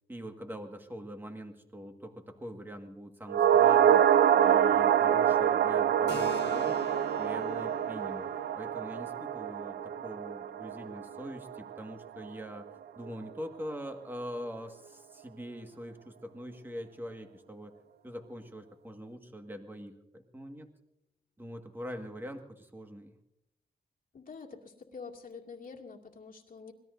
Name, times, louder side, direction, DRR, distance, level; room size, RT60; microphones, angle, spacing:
voice 1, 0.1-6.8 7.1-17.7 18.0-20.7 21.4-23.1, equal, 10° right, 5 dB, 1.7 m, -43 dB
sound 1, 3.3-11.8 12.0-12.1, right 9 dB, 75° right, 0.6 m, -26 dB
Keyboard (musical), 6.1-13.4, left 7 dB, 85° left, 1.6 m, -48 dB
voice 2, 24.1-26.7, left 5 dB, 55° left, 1 dB, 2.3 m, -46 dB
25.0 x 19.5 x 2.7 m, 0.83 s
wide cardioid pair, 105°, 17 cm